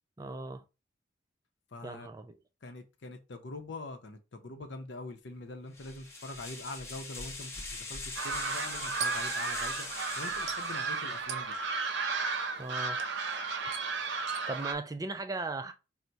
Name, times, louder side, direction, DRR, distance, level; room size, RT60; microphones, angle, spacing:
voice 1, 0.2-0.6 1.8-2.4 12.6-13.0 14.5-15.7, right 3 dB, 20° right, 0.4 m, -37 dB
voice 2, 1.7-2.1 2.6-9.8 10.2-11.5, left 2 dB, 75° left, 0.7 m, -44 dB
sound 1, 5.7-11.3, left 3 dB, 15° left, 0.8 m, -42 dB
sound 2, 8.2-14.7, right 4 dB, 70° right, 0.6 m, -34 dB
4.0 x 2.1 x 4.5 m
head